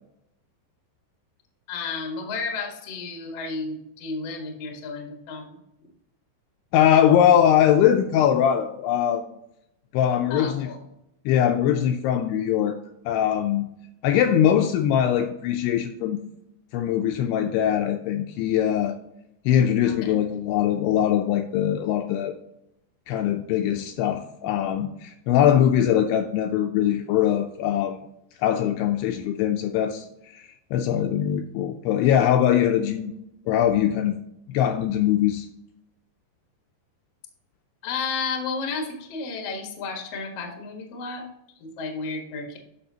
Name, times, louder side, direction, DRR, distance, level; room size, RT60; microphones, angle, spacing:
voice 1, 1.7-5.5 10.3-10.8 19.8-20.1 37.8-41.2 41.6-42.6, left 4 dB, 60° left, 2 dB, 1.6 m, -32 dB
voice 2, 6.7-9.2 9.9-10.7 11.3-12.8 13.1-13.7 14.0-16.2 16.7-19.0 19.5-22.3 23.1-28.0 28.4-33.1 33.5-34.2 34.5-35.5, left 10 dB, 80° left, 5 dB, 2.4 m, -22 dB
9.9 x 6.7 x 2.8 m, 0.82 s
omnidirectional pair, 5.0 m